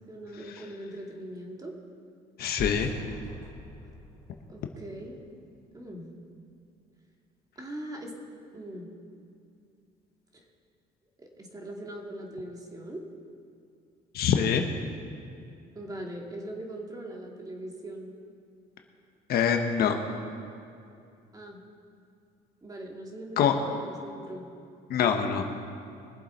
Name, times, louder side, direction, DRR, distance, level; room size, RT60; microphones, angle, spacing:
voice 1, 0.1-1.7 4.5-5.2 5.7-6.1 7.6-8.9 10.3-10.4 11.2-13.0 15.7-18.1 21.3-21.6 22.6-24.5, right 1 dB, 20° right, 0 dB, 2.2 m, -41 dB
voice 2, 2.4-2.9 14.1-14.6 19.3-20.0 23.4-23.6 24.9-25.5, left 8 dB, 65° left, 4 dB, 1.2 m, -24 dB
sound 1, 2.6-5.6, left 2 dB, 15° left, 1.8 m, -42 dB
23.0 x 7.7 x 4.4 m, 2.5 s
cardioid pair, 110°, 17 cm